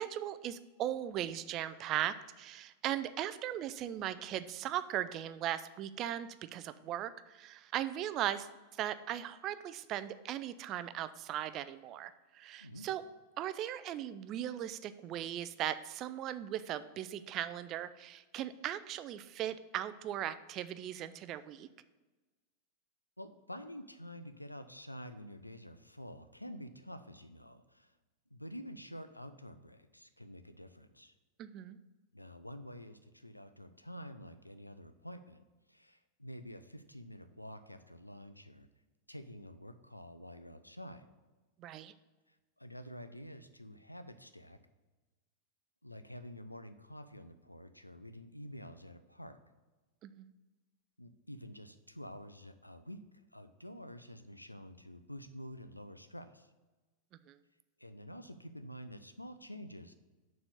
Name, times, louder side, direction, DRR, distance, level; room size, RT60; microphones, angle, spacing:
voice 1, 0.0-8.5 8.7-13.0 13.4-21.7 31.4-31.8 41.6-41.9 50.0-50.3 57.3-57.4, right 11 dB, 35° right, 13 dB, 0.4 m, -38 dB
voice 2, 23.2-27.9 28.3-31.1 32.1-35.4 35.7-38.7 39.1-41.1 42.6-44.6 45.8-49.4 51.0-53.0 53.3-56.5 57.8-59.9, equal, 85° left, 10 dB, 0.5 m, -49 dB
6.9 x 4.2 x 6.6 m, 1.2 s
figure-of-eight pair, 90°, 0 cm